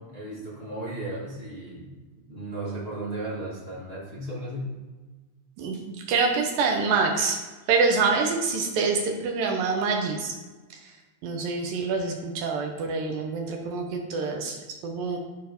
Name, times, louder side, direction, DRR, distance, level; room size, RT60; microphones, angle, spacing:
voice 1, 0.0-2.0 2.3-4.7, right 1 dB, 90° right, -7 dB, 0.5 m, -35 dB
voice 2, 6.1-7.4 7.7-10.4 10.7-10.9 11.2-15.2, right 4 dB, 70° right, 2 dB, 2.3 m, -26 dB
12.5 x 4.6 x 5.3 m, 1.3 s
omnidirectional pair, 4.8 m